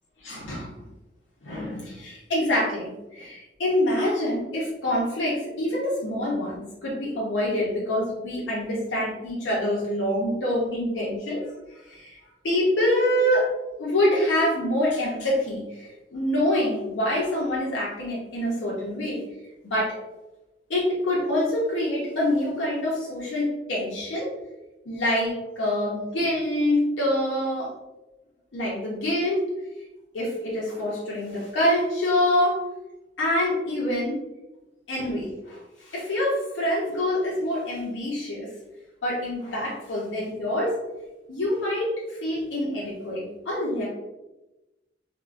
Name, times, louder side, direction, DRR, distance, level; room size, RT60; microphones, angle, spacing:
voice 1, 0.2-0.7 1.4-11.4 11.7-12.2 12.4-13.5 13.8-19.2 19.6-20.0 20.7-24.4 24.9-27.7 28.5-29.4 30.1-32.6 33.2-34.2 34.9-38.5 39.0-40.8 41.3-43.9, left 1 dB, 80° left, -5 dB, 0.6 m, -26 dB
3.5 x 2.1 x 2.4 m, 1.0 s
head